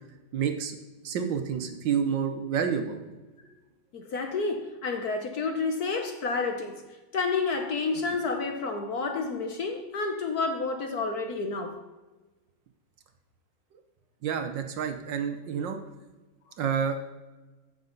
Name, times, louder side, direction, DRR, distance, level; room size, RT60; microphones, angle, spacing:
voice 1, 0.3-0.8 1.0-3.0 13.7-13.8 14.2-15.8 16.6-17.1, right 7 dB, 65° right, 1.5 m, -29 dB
voice 2, 3.9-6.8 7.1-11.8, left 4 dB, 55° left, 1.2 m, -30 dB
14.5 x 6.6 x 3.9 m
omnidirectional pair, 2.2 m